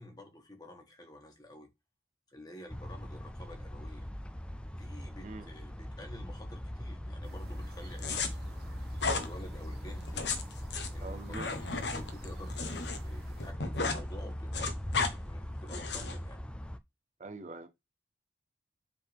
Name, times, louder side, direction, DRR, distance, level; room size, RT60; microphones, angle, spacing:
voice 1, 0.0-1.7 2.3-4.1 4.8-8.2 9.0-10.3 10.9-14.8 15.1-16.4, left 1 dB, 25° left, 1.5 m, -50 dB
sound 1, 2.7-16.8, equal, 5° left, 0.4 m, -41 dB
sound 2, 7.2-13.5, right 2 dB, 60° right, 1.3 m, -55 dB
sound 3, 8.0-8.3 9.0-9.3 10.0-13.0 13.3-14.0 14.3-15.1 15.7-16.2, left 4 dB, 85° left, 1.1 m, -34 dB
voice 2, 11.0-11.5 17.2-17.7, right 3 dB, 40° right, 0.6 m, -43 dB
7.6 x 3.8 x 3.4 m
head